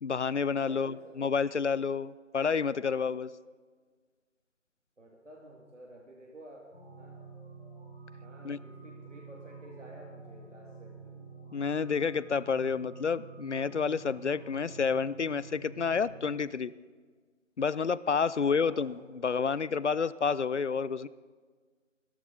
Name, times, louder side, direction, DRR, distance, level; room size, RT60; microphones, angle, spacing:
voice 1, 0.0-3.3 8.4-8.6 11.5-16.7 17.6-21.1, left 5 dB, 65° left, 18 dB, 0.5 m, -29 dB
voice 2, 0.5-1.3 5.0-6.7 7.0-7.2 8.2-11.2 18.3-19.1, right 1 dB, 70° right, 0 dB, 2.0 m, -52 dB
sound 1, 6.7-16.3, right 4 dB, 5° right, 1.3 m, -49 dB
17.0 x 13.0 x 3.9 m, 1.5 s
figure-of-eight pair, 165°, 39 cm